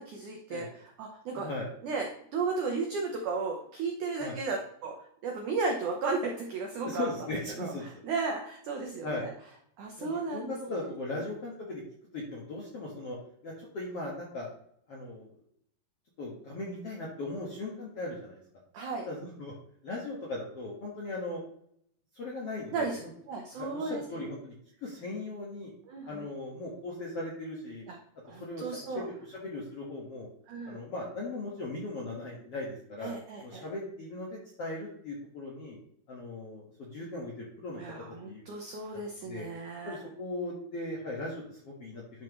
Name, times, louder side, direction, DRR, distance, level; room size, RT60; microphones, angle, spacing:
voice 1, 0.0-1.5 1.8-5.0 5.2-7.1 7.6-7.7 8.0-9.3 9.8-10.6 18.7-19.0 22.7-23.0 23.3-24.2 25.9-26.3 27.9-28.0 28.3-29.1 30.5-30.8 33.0-33.6 37.8-40.0, right 4 dB, 80° right, 1 dB, 1.7 m, -34 dB
voice 2, 1.3-1.7 4.2-4.4 6.8-7.8 9.0-9.2 10.0-11.8 12.1-13.2 13.4-14.5 14.9-15.3 16.2-18.4 19.0-19.5 19.8-21.4 22.1-23.1 23.5-24.5 24.8-25.7 26.1-27.8 28.4-30.3 30.6-33.1 33.4-35.8 36.1-37.8 38.3-38.4 39.2-39.4 39.8-42.2, left 2 dB, 60° left, -4 dB, 1.6 m, -38 dB
11.0 x 5.9 x 3.1 m, 0.68 s
omnidirectional pair, 5.1 m